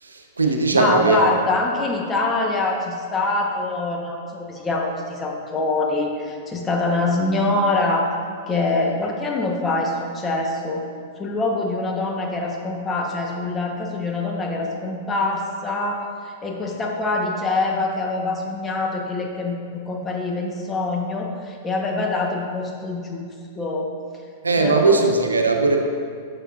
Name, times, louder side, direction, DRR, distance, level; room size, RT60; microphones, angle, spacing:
voice 1, 0.0-1.2 24.4-25.8, right 3 dB, 85° right, 3 dB, 0.7 m, -19 dB
voice 2, 0.7-8.1 8.5-10.8 11.2-23.2 23.6-23.9 24.6-25.0, left 2 dB, 20° left, 0 dB, 1.1 m, -24 dB
9.9 x 6.7 x 2.5 m, 2.1 s
figure-of-eight pair, 100°, 0 cm